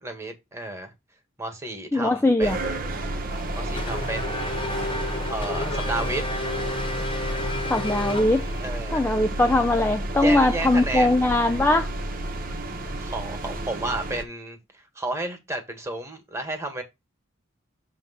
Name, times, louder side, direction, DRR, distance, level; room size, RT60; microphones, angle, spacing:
voice 1, 0.0-0.9 1.4-2.7 3.5-4.7 5.3-6.2 8.6-9.2 10.2-11.1 12.9-14.6 14.9-16.8, right 2 dB, 15° right, 1.5 m, -32 dB
voice 2, 1.9-2.6 7.7-8.5 8.9-11.9, left 2 dB, 10° left, 0.4 m, -21 dB
sound 1, 2.4-14.2, right 1 dB, 45° right, 0.9 m, -31 dB
Race car auto racing / Accelerating revving vroom, 3.3-8.8, left 2 dB, 25° left, 1.2 m, -32 dB
6.9 x 3.0 x 5.6 m
head